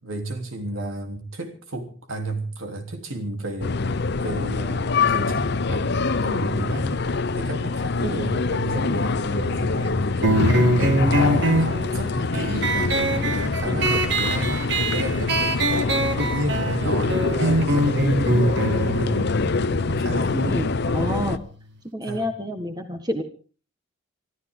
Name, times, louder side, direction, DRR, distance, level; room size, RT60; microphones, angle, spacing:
voice 1, 0.0-3.8 4.2-15.6 16.2-19.3 19.8-20.6 22.0-22.3, right 1 dB, 75° right, 5 dB, 3.3 m, -32 dB
sound 1, 3.6-21.4, left 3 dB, 50° left, 0.7 m, -25 dB
sound 2, 10.2-21.3, right 1 dB, 55° right, 2.0 m, -24 dB
voice 2, 20.5-21.4 21.9-23.2, equal, 20° right, 7 dB, 1.5 m, -29 dB
25.5 x 14.0 x 3.8 m, 0.39 s
head